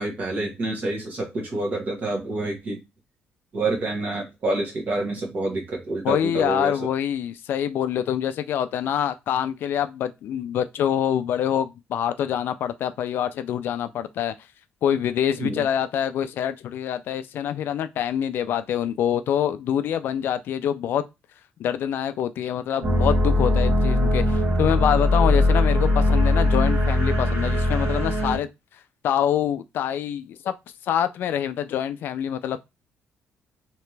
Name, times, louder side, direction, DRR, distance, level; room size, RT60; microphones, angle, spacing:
voice 1, 0.0-2.8 3.5-6.7 15.4-15.6, right 2 dB, 40° right, 1.5 m, -27 dB
voice 2, 6.0-14.3 14.8-21.0 21.6-28.5 29.0-30.5 30.8-32.6, left 9 dB, 60° left, 0.4 m, -25 dB
sound 1, 22.8-28.4, left 1 dB, 65° right, 1.5 m, -20 dB
3.3 x 2.9 x 3.2 m
cardioid pair, 150°, 4 cm